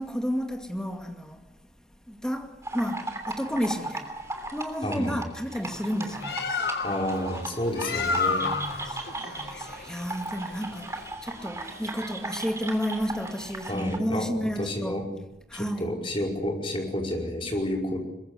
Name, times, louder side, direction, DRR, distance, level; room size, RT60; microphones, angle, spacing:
voice 1, 0.0-1.5 2.1-4.1 4.5-6.4 8.4-15.0 15.5-15.9, equal, 5° left, 2.3 m, -32 dB
sound 1, 2.6-14.0, right 2 dB, 15° right, 3.0 m, -37 dB
Bird, 6.0-11.2, left 4 dB, 65° left, 1.3 m, -31 dB
voice 2, 6.8-8.5 13.7-14.3 14.6-15.0 15.5-18.0, left 1 dB, 30° left, 5.3 m, -30 dB
23.5 x 21.5 x 8.4 m
head